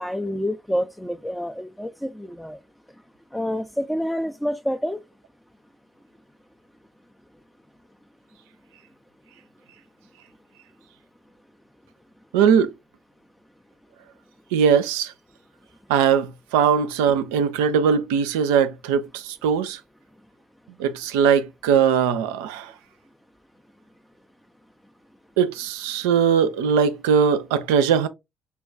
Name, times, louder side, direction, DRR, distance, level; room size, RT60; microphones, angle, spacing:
voice 1, 0.0-2.6 3.3-5.0, equal, 5° left, 0.3 m, -28 dB
voice 2, 12.3-12.7 14.5-15.1 15.9-19.8 20.8-22.7 25.4-28.1, right 7 dB, 75° right, 0.3 m, -20 dB
5.5 x 2.2 x 2.3 m
figure-of-eight pair, 45°, 0 cm